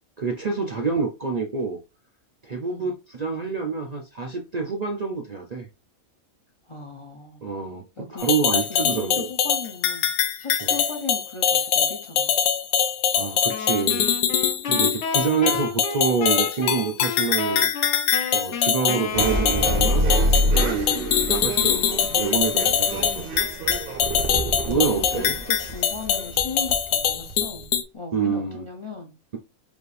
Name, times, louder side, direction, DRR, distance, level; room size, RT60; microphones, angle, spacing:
voice 1, 0.2-1.8 2.4-5.7 7.4-7.9 8.1-9.3 10.6-10.7 13.1-14.1 14.7-17.7 18.3-20.1 20.5-23.3 24.7-25.4 28.1-28.6, right 5 dB, 70° right, 0.3 m, -27 dB
voice 2, 6.7-7.4 8.0-10.1 10.4-12.3 15.2-15.4 22.9-23.5 24.6-29.1, left 4 dB, 40° left, 0.4 m, -37 dB
sound 1, 8.2-27.8, left 8 dB, 85° left, 1.1 m, -23 dB
sound 2, 13.5-20.1, left 5 dB, 60° left, 0.9 m, -31 dB
sound 3, 19.1-27.7, right 1 dB, 50° right, 0.8 m, -27 dB
5.1 x 2.6 x 3.2 m
omnidirectional pair, 1.5 m